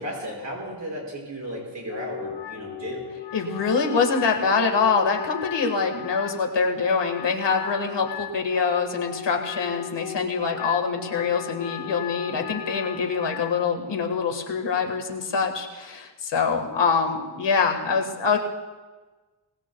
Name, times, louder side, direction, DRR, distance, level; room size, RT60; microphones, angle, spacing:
voice 1, 0.0-3.1, equal, 40° right, -3 dB, 5.9 m, -34 dB
Wind instrument woodwind instrument, 1.9-13.5, left 10 dB, 85° left, 1.6 m, -37 dB
voice 2, 3.3-18.4, left 5 dB, 70° left, 4 dB, 1.7 m, -24 dB
24.0 x 19.5 x 2.3 m, 1.3 s
wide cardioid pair, 165°, 45 cm